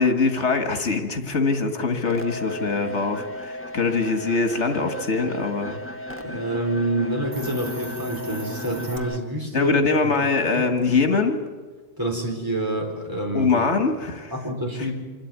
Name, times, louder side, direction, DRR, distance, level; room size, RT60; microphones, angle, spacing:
voice 1, 0.0-5.8 9.5-11.4 13.3-14.3, left 4 dB, 85° left, 6 dB, 2.1 m, -23 dB
sound 1, 2.0-9.2, left 1 dB, 10° left, 1.0 m, -35 dB
voice 2, 6.2-9.8 10.1-10.2 10.6-10.7 11.1-11.2 12.0-13.6 14.3-14.9, right 1 dB, 20° right, -1 dB, 4.7 m, -27 dB
Hiss, 7.2-9.0, right 2 dB, 45° right, 1.8 m, -40 dB
26.5 x 13.0 x 9.4 m, 1.4 s
omnidirectional pair, 1.2 m